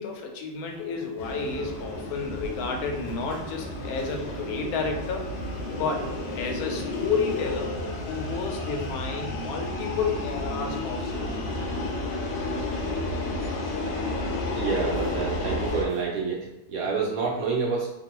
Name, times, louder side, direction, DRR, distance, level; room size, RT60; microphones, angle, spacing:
voice 1, 0.0-5.3 5.8-7.7 8.0-11.4, left 5 dB, 70° left, 2 dB, 1.0 m, -31 dB
sound 1, 0.5-16.0, left 1 dB, 10° left, 0.8 m, -47 dB
sound 2, 1.2-15.8, left 2 dB, 90° left, 1.3 m, -32 dB
voice 2, 14.5-17.9, right 4 dB, 70° right, -3 dB, 0.9 m, -28 dB
2.9 x 2.2 x 2.9 m, 0.93 s
omnidirectional pair, 1.8 m